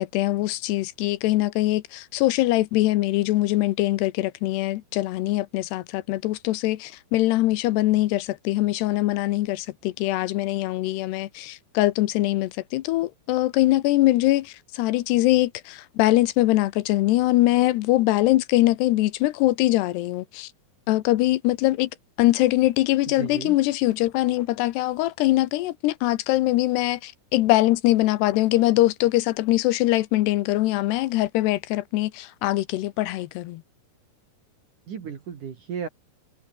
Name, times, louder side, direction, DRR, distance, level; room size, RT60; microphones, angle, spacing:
voice 1, 0.0-20.5 20.9-21.9 22.2-33.6, left 17 dB, 85° left, 3.0 m, -22 dB
voice 2, 23.1-23.6 34.9-35.9, right 7 dB, 55° right, 3.7 m, -34 dB
omnidirectional pair, 4.7 m